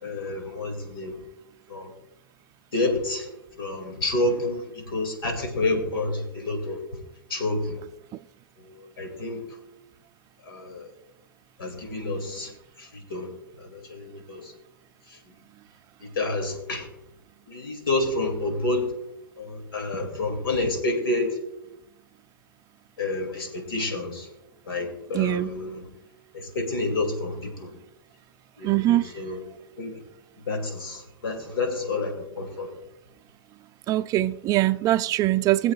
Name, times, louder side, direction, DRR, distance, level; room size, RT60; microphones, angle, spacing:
voice 1, 0.0-1.2 1.7-1.9 2.7-3.3 3.6-6.8 7.3-7.8 8.6-9.4 10.5-10.9 11.6-12.5 12.8-13.3 13.6-14.5 15.1-15.2 16.0-16.9 17.5-18.9 19.4-21.4 23.0-24.3 24.7-25.9 26.3-27.7 28.6-29.4 29.8-30.0 30.5-32.7, left 2 dB, 80° left, 2.6 m, -29 dB
voice 2, 25.1-25.5 28.6-29.1 33.9-35.7, right 15 dB, 30° right, 0.4 m, -22 dB
21.0 x 7.9 x 2.4 m
hypercardioid pair, 120°, 12 cm